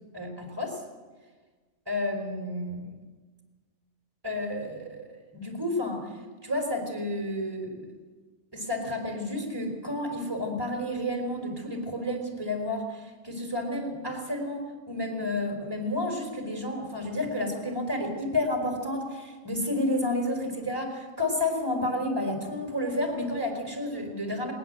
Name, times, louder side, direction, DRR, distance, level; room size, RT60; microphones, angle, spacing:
voice 1, 0.1-0.8 1.9-2.9 4.2-5.1 5.3-6.1 6.4-7.8 8.5-24.5, left 1 dB, 15° right, 2 dB, 4.4 m, -31 dB
20.5 x 19.5 x 7.8 m, 1.3 s
omnidirectional pair, 1.5 m